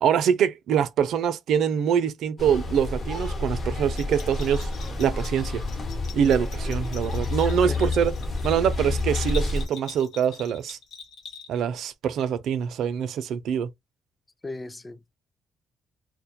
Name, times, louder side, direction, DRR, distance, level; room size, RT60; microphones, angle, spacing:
voice 1, 0.0-4.7 5.0-5.6 6.1-8.1 8.4-10.8 11.5-13.7, right 8 dB, 75° right, 0.4 m, -24 dB
sound 1, 2.4-9.7, left 2 dB, 45° left, 0.9 m, -29 dB
Bell, 3.9-11.8, left 6 dB, 80° left, 0.8 m, -44 dB
voice 2, 14.4-15.2, left 3 dB, 20° left, 0.3 m, -37 dB
2.2 x 2.0 x 2.8 m
cardioid pair, 90°, 0 cm